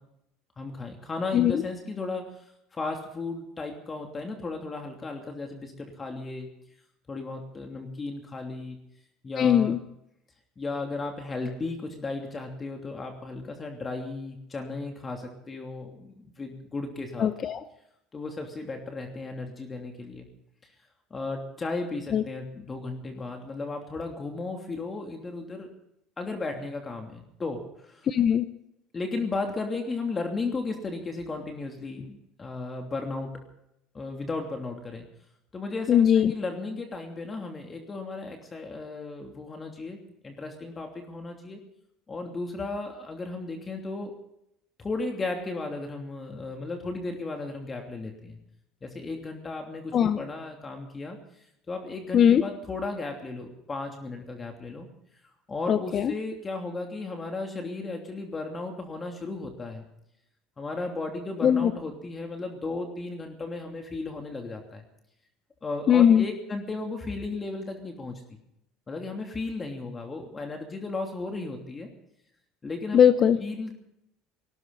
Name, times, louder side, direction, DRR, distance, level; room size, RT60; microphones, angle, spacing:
voice 1, 0.6-2.4 2.7-6.5 7.1-8.8 9.2-9.8 10.6-17.3 18.1-20.3 21.1-25.7 26.2-28.1 28.9-33.3 33.9-35.1 35.5-41.6 42.1-44.2 44.8-48.4 48.8-51.2 51.7-54.9 55.5-59.8 60.6-64.8 65.6-68.2 68.9-71.9 72.6-73.0 73.4-73.8, left 3 dB, 25° left, 3 dB, 2.9 m, -35 dB
voice 2, 9.4-9.8 17.2-17.6 22.1-22.2 28.1-28.5 35.9-36.3 49.9-50.2 52.1-52.4 55.7-56.1 61.4-61.7 65.9-66.3 72.9-73.4, left 9 dB, 45° left, 13 dB, 0.8 m, -20 dB
19.0 x 17.5 x 4.1 m, 0.79 s
hypercardioid pair, 75°, 0 cm